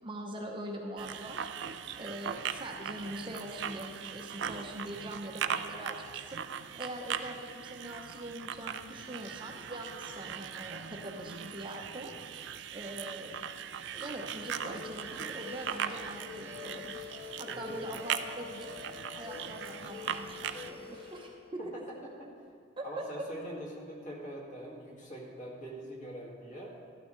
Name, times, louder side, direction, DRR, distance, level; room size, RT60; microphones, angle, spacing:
voice 1, 0.0-1.4 1.7-6.4 6.7-12.1 12.7-13.4 13.9-18.7 19.1-21.6 22.8-23.3, right 1 dB, 25° right, 1 dB, 0.8 m, -42 dB
sound 1, 1.0-20.7, right 8 dB, 60° right, 0.4 m, -40 dB
sound 2, 14.4-21.3, left 6 dB, 65° left, 1.9 m, -47 dB
voice 2, 17.5-17.9 21.6-22.3 22.8-26.8, right 1 dB, 40° left, -3 dB, 2.1 m, -43 dB
13.0 x 12.0 x 3.2 m, 2.2 s
head